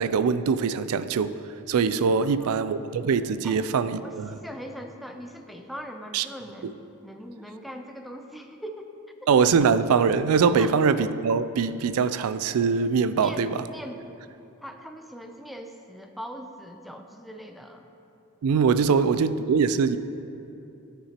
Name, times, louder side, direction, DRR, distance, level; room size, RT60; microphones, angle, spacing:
voice 1, 0.0-1.4 1.7-4.3 6.1-6.3 9.3-13.7 18.4-20.0, right 5 dB, 75° right, 14 dB, 0.3 m, -22 dB
voice 2, 2.2-2.6 3.4-3.6 4.0-8.9 9.2-9.5 10.6-10.7 13.2-14.1 14.6-17.9 18.9-19.1, equal, ahead, 4 dB, 0.4 m, -41 dB
12.5 x 6.8 x 2.9 m, 2.8 s
head